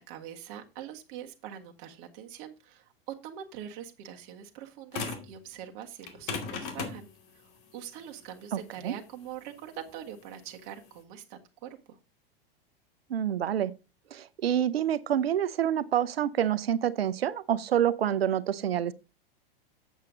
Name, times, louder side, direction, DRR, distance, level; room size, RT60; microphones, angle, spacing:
voice 1, 0.0-12.0, right 10 dB, 50° right, 1.6 m, -43 dB
sound 1, 4.9-5.3 6.0-11.0, left 5 dB, 60° left, 2.4 m, -38 dB
voice 2, 13.1-13.7 14.1-18.9, right 10 dB, 90° right, 0.7 m, -27 dB
8.0 x 7.8 x 3.8 m
hypercardioid pair, 110°, 29 cm